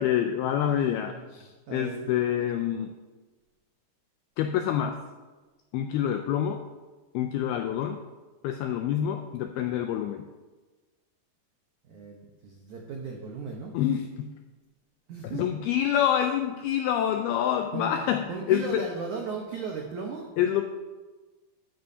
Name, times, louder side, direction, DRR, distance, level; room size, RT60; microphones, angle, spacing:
voice 1, 0.0-2.9 4.4-5.0 5.7-6.6 7.1-8.0 8.4-10.3 13.7-14.4 15.3-18.9 20.4-20.6, left 10 dB, 90° left, 6 dB, 2.2 m, -27 dB
voice 2, 1.7-2.1 11.9-13.7 15.1-15.5 17.7-18.0 18.3-20.3, right 5 dB, 85° right, 0 dB, 1.7 m, -36 dB
13.0 x 12.0 x 2.8 m, 1.3 s
omnidirectional pair, 5.1 m